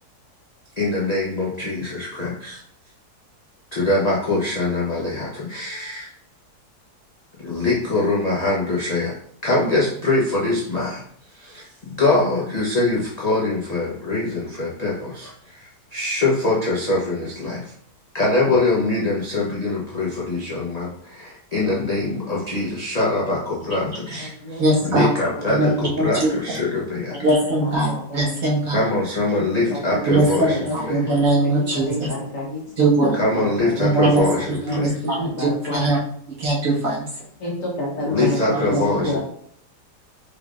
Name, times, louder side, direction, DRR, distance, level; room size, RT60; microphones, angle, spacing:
voice 1, 0.8-2.6 3.7-6.1 7.4-9.1 9.4-11.0 11.3-17.7 18.1-27.2 28.7-31.0 33.2-34.9 38.1-39.2, left 2 dB, 35° left, -7 dB, 0.7 m, -23 dB
voice 2, 23.8-24.2 24.6-25.1 25.5-26.3 27.2-28.9 30.1-32.1 32.8-33.1 33.8-36.0 36.4-37.1 38.2-38.3 38.5-38.8, right 2 dB, 55° right, -5 dB, 1.6 m, -21 dB
voice 3, 27.6-28.4 29.3-31.2 31.4-32.6 33.0-35.9 37.4-37.5 37.8-38.4 38.7-39.2, left 1 dB, 55° left, -4 dB, 1.5 m, -29 dB
4.6 x 3.4 x 2.4 m, 0.65 s
omnidirectional pair, 1.8 m